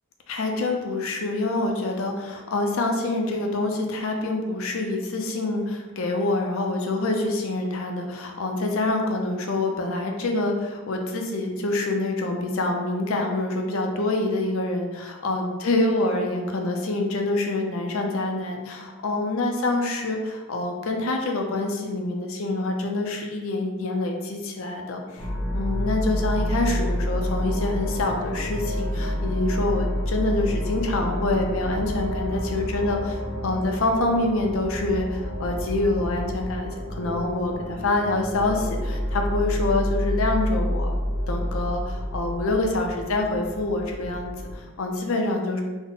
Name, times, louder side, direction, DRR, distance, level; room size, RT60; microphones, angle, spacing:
voice 1, 0.3-25.3 25.5-40.9 41.3-45.6, left 2 dB, 65° left, 2 dB, 0.5 m, -26 dB
sound 1, 25.2-44.5, equal, 15° left, 0.5 m, -29 dB
3.4 x 2.1 x 3.8 m, 1.2 s
head